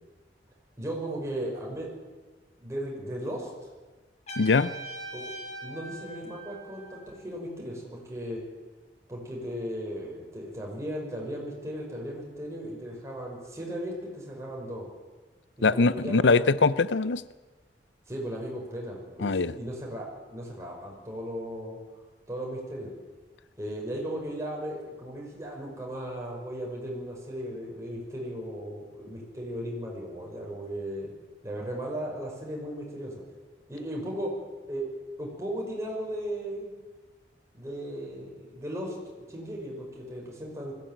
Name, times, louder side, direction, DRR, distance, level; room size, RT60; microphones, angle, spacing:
voice 1, 0.8-1.9 2.6-3.5 5.1-5.3 5.6-8.4 9.1-14.9 15.6-16.4 18.1-21.8 22.3-22.9 23.6-31.1 31.4-33.2 33.7-34.4 34.7-34.9 35.2-36.7 37.5-40.7, equal, 15° right, -2 dB, 5.9 m, -36 dB
Trumpet, 4.3-7.1, right 2 dB, 40° left, 6.0 m, -41 dB
voice 2, 4.4-4.7 15.6-17.2 19.2-19.5, left 4 dB, 85° left, 16 dB, 0.6 m, -22 dB
20.5 x 15.5 x 9.2 m, 1.3 s
head